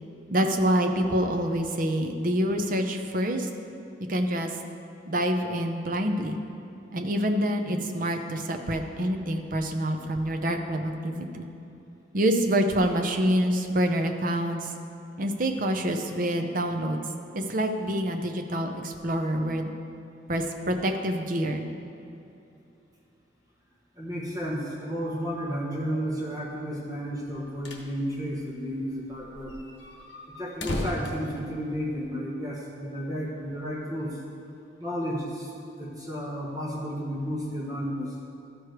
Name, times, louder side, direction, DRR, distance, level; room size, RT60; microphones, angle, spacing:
voice 1, 0.3-3.5 4.1-4.5 5.1-6.4 6.9-11.5 12.1-14.7 15.2-17.0 17.3-19.7 20.3-21.7, equal, 45° right, 4 dB, 0.7 m, -26 dB
voice 2, 24.0-29.6 30.4-34.2 34.8-35.5 35.8-38.2, equal, 20° right, -5 dB, 1.1 m, -32 dB
sound 1, 27.3-27.9 28.2-28.3 28.5-28.6 29.1-32.1, left 1 dB, 70° left, 1.0 m, -36 dB
13.0 x 4.9 x 4.6 m, 2.7 s
head